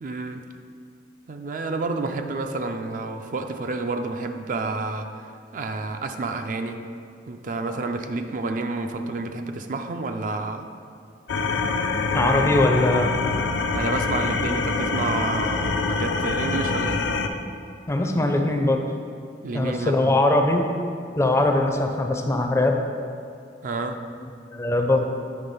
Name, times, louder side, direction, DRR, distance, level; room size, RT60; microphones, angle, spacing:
voice 1, 0.0-0.5 1.3-5.3 5.5-6.8 7.3-10.7 12.1-12.5 13.7-17.1 19.4-20.1 23.6-24.0, right 3 dB, 50° right, 6 dB, 0.4 m, -29 dB
sound 1, 11.3-17.3, left 4 dB, 85° left, 0.5 m, -25 dB
voice 2, 12.1-13.1 17.9-18.8 19.5-20.7 21.2-22.8 24.5-25.1, left 2 dB, 15° left, 3 dB, 0.4 m, -21 dB
8.7 x 3.3 x 5.4 m, 2.3 s
head